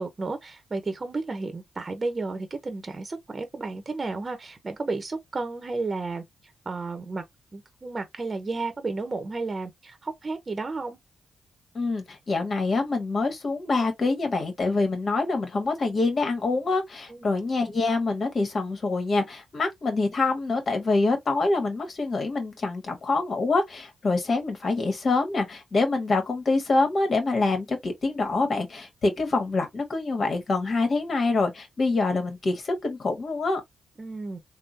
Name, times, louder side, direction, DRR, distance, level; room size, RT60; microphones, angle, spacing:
voice 1, 0.0-6.2 6.7-7.2 7.5-11.0 17.1-17.3 34.0-34.4, right 3 dB, 40° right, 0.8 m, -32 dB
voice 2, 11.7-33.6, left 3 dB, 55° left, 1.5 m, -25 dB
3.6 x 2.2 x 2.7 m
supercardioid pair, 55°, 0 cm